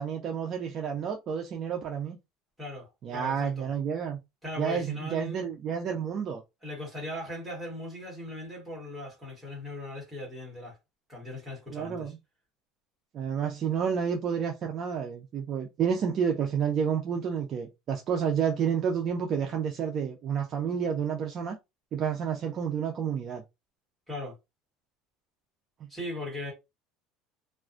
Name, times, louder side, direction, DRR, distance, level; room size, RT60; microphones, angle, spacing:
voice 1, 0.0-2.2 3.0-4.2 4.6-6.4 11.7-12.2 13.1-21.6 21.9-23.4, right 7 dB, 30° right, 0.4 m, -30 dB
voice 2, 2.6-3.7 4.4-5.5 6.6-10.8 11.1-12.1 24.1-24.4 25.9-26.5, left 1 dB, ahead, 1.2 m, -39 dB
2.4 x 2.2 x 2.4 m
cardioid pair, 170°, 0 cm